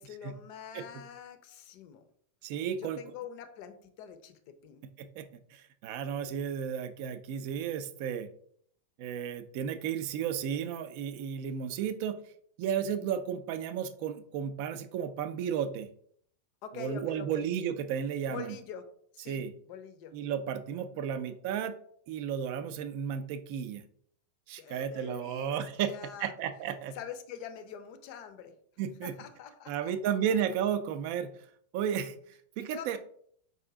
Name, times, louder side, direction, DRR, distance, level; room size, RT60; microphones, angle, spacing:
voice 1, 0.0-2.0 2.8-4.8 16.6-17.5 18.3-18.9 19.1-20.1 24.6-25.5 25.8-26.3 26.9-28.5 29.0-30.1 32.7-33.0, left 7 dB, 45° left, 8 dB, 0.5 m, -45 dB
voice 2, 2.4-3.0 5.0-8.3 9.0-12.2 12.6-15.9 16.7-18.6 19.3-19.5 20.1-21.8 22.1-23.8 24.5-25.9 26.2-26.9 28.8-29.1 29.7-31.3 31.7-32.2 32.6-33.0, right 8 dB, 45° right, 11 dB, 0.4 m, -33 dB
4.8 x 2.6 x 3.6 m, 0.63 s
figure-of-eight pair, 90°, 0 cm